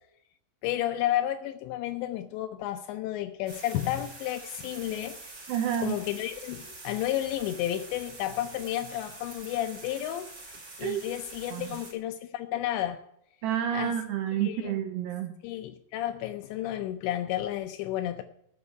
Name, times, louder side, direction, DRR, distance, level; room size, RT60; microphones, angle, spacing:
voice 1, 0.6-5.3 5.8-10.3 10.8-13.0 13.7-13.9 14.3-14.7 15.4-18.2, left 13 dB, 85° left, 7 dB, 2.5 m, -32 dB
sound 1, 3.5-11.9, right 3 dB, 25° right, 4.6 m, -46 dB
voice 2, 5.5-6.0 10.8-11.0 11.5-11.7 13.4-15.3, right 9 dB, 80° right, 6 dB, 2.5 m, -29 dB
12.5 x 6.2 x 9.7 m, 0.76 s
omnidirectional pair, 5.8 m